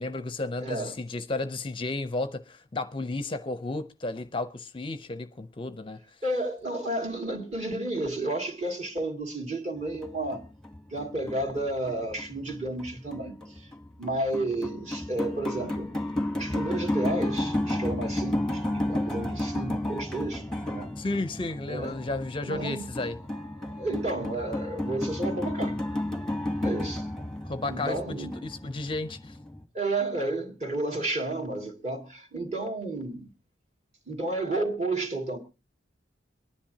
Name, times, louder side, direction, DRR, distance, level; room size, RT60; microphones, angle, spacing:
voice 1, 0.0-6.0 19.1-19.3 21.0-23.2 27.4-29.4, left 2 dB, 30° left, 0.5 m, -33 dB
voice 2, 0.6-0.9 6.2-10.4 10.9-13.7 14.0-15.9 16.4-20.9 21.7-22.0 22.4-22.9 23.6-25.8 26.6-27.1 27.7-28.4 29.7-33.3 34.1-35.4, right 2 dB, 40° right, 2.3 m, -32 dB
sound 1, 9.8-29.6, left 1 dB, 5° left, 1.1 m, -32 dB
23.5 x 10.5 x 2.8 m
head